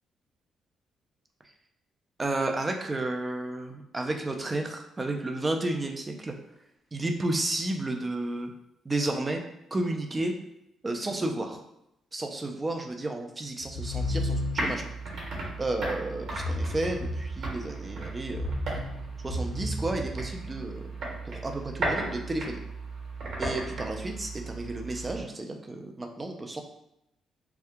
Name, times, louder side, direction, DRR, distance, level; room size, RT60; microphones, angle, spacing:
voice 1, 2.2-6.3 6.9-8.5 8.8-9.4 9.7-10.3 10.8-11.6 12.1-14.9 15.6-18.5 19.2-20.9 21.2-22.6 23.4-26.6, right 2 dB, 25° right, 4 dB, 0.5 m, -32 dB
sound 1, 13.6-14.9 16.3-17.7 18.2-20.7, left 1 dB, 90° left, 0.5 m, -33 dB
sound 2, 13.8-25.2, right 2 dB, 55° right, 1.2 m, -36 dB
2.7 x 2.3 x 3.5 m, 0.82 s
cardioid pair, 90°, 0 cm